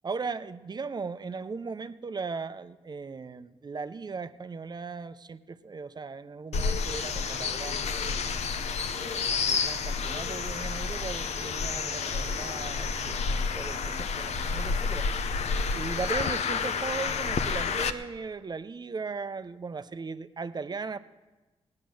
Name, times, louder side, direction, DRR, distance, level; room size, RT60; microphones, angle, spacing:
voice 1, 0.0-8.6 8.9-15.1 15.7-21.0, right 4 dB, 40° right, 12 dB, 0.7 m, -38 dB
sound 1, 6.5-17.9, left 5 dB, 85° left, 0.8 m, -30 dB
17.0 x 10.5 x 6.3 m, 1.2 s
cardioid pair, 80°, 11 cm